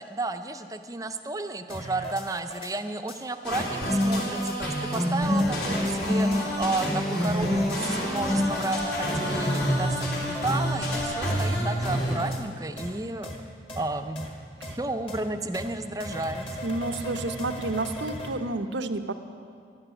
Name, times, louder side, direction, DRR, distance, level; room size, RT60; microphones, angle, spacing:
voice 1, 0.0-13.3 13.8-14.3 14.8-16.6, right 2 dB, 20° right, 8 dB, 0.6 m, -32 dB
sound 1, 1.7-2.7 3.1-3.2 3.5-4.6 4.9-5.0 5.4-6.4 6.8-6.9 7.2-7.8 8.2-8.7 9.1-9.6 10.0-10.6 10.9-11.5 11.8-12.4 12.8-12.9 13.2-13.4 13.7-13.8 14.2-14.3 14.6-14.7 15.1-15.2 15.5-15.7 16.0-18.3, equal, 30° left, 1.6 m, -38 dB
sound 2, 3.4-12.2, equal, 70° left, 3.6 m, -27 dB
voice 2, 16.6-19.1, right 2 dB, 90° right, 9 dB, 0.8 m, -30 dB
12.0 x 11.5 x 9.0 m, 2.2 s
head